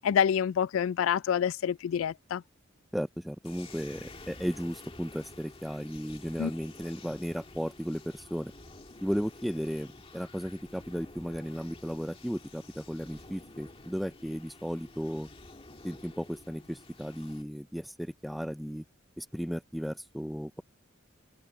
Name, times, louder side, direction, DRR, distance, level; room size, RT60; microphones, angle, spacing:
voice 1, 0.0-2.4 6.4-6.5, left 8 dB, 85° left, 0.3 m, -27 dB
voice 2, 2.9-8.5 9.0-15.3 15.8-18.8 19.2-20.6, equal, ahead, 0.4 m, -35 dB
sound 1, 3.4-17.4, left 2 dB, 30° left, 2.1 m, -50 dB
head